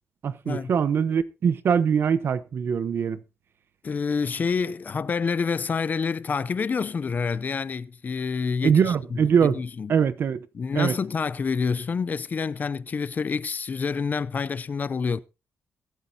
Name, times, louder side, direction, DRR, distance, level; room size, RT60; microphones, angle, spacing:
voice 1, 0.2-3.2 8.6-9.6 9.9-10.5 10.7-11.0, right 7 dB, 55° right, 0.9 m, -22 dB
voice 2, 3.8-8.8 9.1-10.0 10.5-15.2, left 5 dB, 40° left, 0.5 m, -27 dB
22.5 x 8.3 x 2.8 m
cardioid pair, 100°, 5 cm